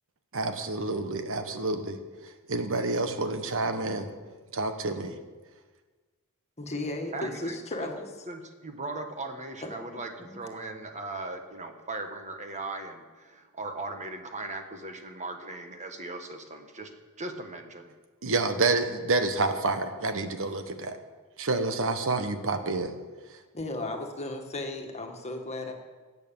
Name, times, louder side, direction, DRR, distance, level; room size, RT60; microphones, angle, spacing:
voice 1, 0.3-2.0 2.5-4.1 4.5-5.2 18.2-21.0 21.4-22.9, right 3 dB, 65° right, 8 dB, 1.2 m, -28 dB
voice 2, 6.6-8.3 9.6-10.4 23.5-25.7, left 2 dB, 30° left, 3 dB, 1.9 m, -35 dB
voice 3, 7.1-7.9 8.3-16.9 17.2-17.9, right 2 dB, 35° right, 5 dB, 1.4 m, -38 dB
17.5 x 8.4 x 7.1 m, 1.3 s
head